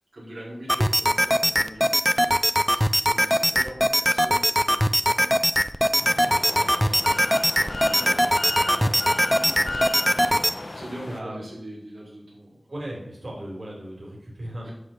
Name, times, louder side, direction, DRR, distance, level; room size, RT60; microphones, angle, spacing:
voice 1, 0.1-6.1 6.4-9.0 9.3-9.8 10.7-12.6 14.6-14.7, right 1 dB, 85° right, -7 dB, 4.3 m, -43 dB
sound 1, 0.7-10.5, equal, ahead, 0.5 m, -21 dB
sound 2, 5.9-11.2, left 2 dB, 65° left, 1.0 m, -34 dB
voice 2, 11.1-11.4 12.7-14.7, right 1 dB, 60° right, -3 dB, 4.2 m, -36 dB
9.9 x 6.5 x 5.9 m, 0.81 s
wide cardioid pair, 45°, 0 cm